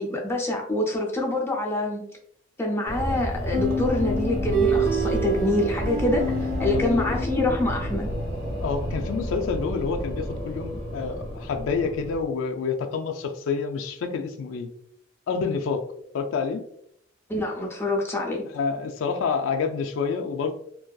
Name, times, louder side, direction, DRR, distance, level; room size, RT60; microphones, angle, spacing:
voice 1, 0.0-2.0 2.6-8.1 17.3-18.4, left 1 dB, 15° left, -1 dB, 0.5 m, -26 dB
sound 1, 2.9-12.2, equal, 85° right, 0.9 m, -30 dB
sound 2, 3.5-8.2, right 2 dB, 45° right, 0.6 m, -28 dB
voice 2, 8.6-14.7 15.3-15.8 16.1-16.6 18.5-20.5, left 5 dB, 75° left, 5 dB, 0.3 m, -28 dB
2.6 x 2.2 x 2.2 m, 0.69 s
head